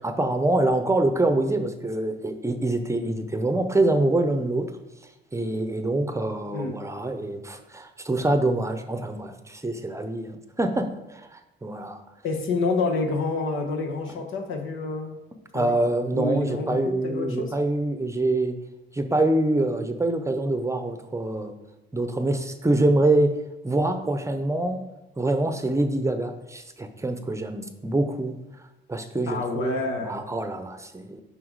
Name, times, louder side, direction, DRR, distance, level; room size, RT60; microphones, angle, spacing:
voice 1, 0.0-4.7 5.3-12.0 15.5-18.6 18.9-21.5 21.9-23.4 23.6-24.8 25.2-28.4 28.9-31.2, right 2 dB, 15° right, 8 dB, 0.7 m, -25 dB
voice 2, 12.2-15.2 15.5-15.7 16.1-17.5 29.3-30.2, left 3 dB, 80° left, 3 dB, 1.2 m, -28 dB
6.0 x 5.7 x 4.7 m, 0.96 s
cardioid pair, 90°, 20 cm